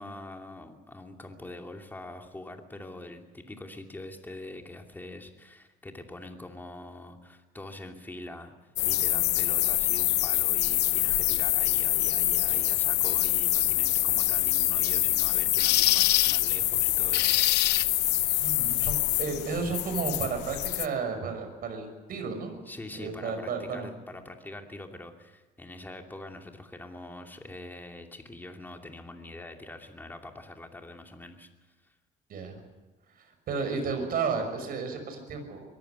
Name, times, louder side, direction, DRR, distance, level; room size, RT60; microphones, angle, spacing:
voice 1, 0.0-8.5 8.8-17.4 22.7-31.5 31.8-31.9, left 2 dB, 10° left, 4 dB, 2.7 m, -44 dB
sound 1, 8.8-20.9, left 16 dB, 80° left, 0.8 m, -25 dB
voice 2, 18.4-22.6 22.9-23.9 32.3-32.6 33.2-35.6, right 5 dB, 60° right, 6 dB, 6.1 m, -33 dB
23.0 x 14.5 x 9.7 m, 1.2 s
cardioid pair, 110°, 17 cm